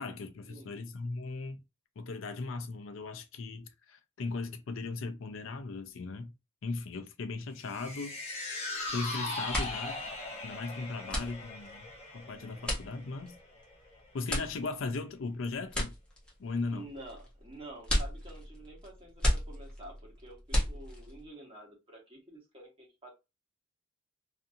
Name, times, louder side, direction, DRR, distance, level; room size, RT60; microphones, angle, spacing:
voice 1, 0.0-1.6 2.0-6.3 6.6-8.2 8.9-10.0 10.4-13.4 14.1-15.9 16.4-16.9, left 3 dB, 70° left, 0.5 m, -38 dB
sound 1, 7.6-14.0 14.4-14.5, left 2 dB, 30° left, 0.9 m, -40 dB
sound 2, 8.8-9.1 9.3-21.3, equal, 5° left, 0.8 m, -35 dB
voice 2, 16.7-23.1, right 1 dB, 25° right, 1.1 m, -49 dB
2.6 x 2.5 x 2.6 m
head